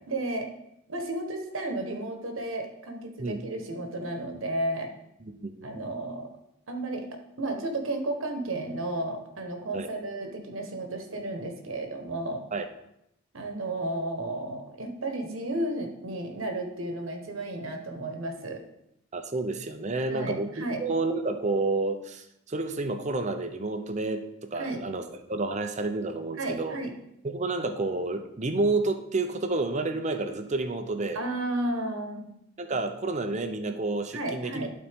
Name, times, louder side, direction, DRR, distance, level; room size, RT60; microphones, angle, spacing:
voice 1, 0.1-0.5 0.9-4.9 5.6-6.3 6.7-7.0 7.4-12.4 13.3-18.6 20.1-20.8 24.5-24.8 26.4-26.9 31.1-32.3 34.1-34.7, right 1 dB, 75° right, 4 dB, 1.2 m, -33 dB
voice 2, 5.3-5.7 9.7-9.9 12.5-12.7 19.1-25.0 25.3-26.8 27.2-31.2 32.6-34.8, right 3 dB, 35° right, 8 dB, 0.6 m, -30 dB
11.5 x 4.2 x 3.6 m, 0.80 s
head